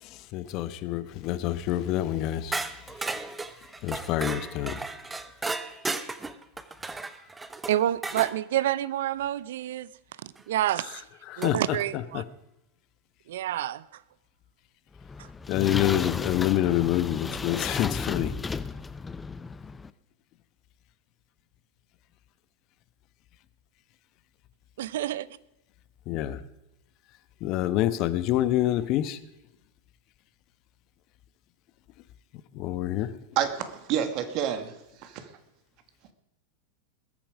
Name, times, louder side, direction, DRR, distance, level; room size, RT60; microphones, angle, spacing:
voice 1, 0.3-2.5 3.8-4.8 11.3-11.5 15.5-18.3 26.1-26.4 27.4-29.2 32.6-33.1, left 13 dB, 50° left, 1.1 m, -26 dB
sound 1, 2.5-8.4 10.4-10.5 11.4-11.9, right 3 dB, 15° right, 1.0 m, -35 dB
voice 2, 7.7-9.9 10.2-11.0 11.4-12.2 13.3-13.8 15.2-15.3 24.8-25.3, right 12 dB, 70° right, 0.7 m, -28 dB
sound 2, 15.0-19.9, left 4 dB, 15° left, 0.6 m, -34 dB
voice 3, 33.4-34.7 35.0-35.1, right 9 dB, 50° right, 2.1 m, -28 dB
20.5 x 9.0 x 5.1 m
hypercardioid pair, 95°, 0 cm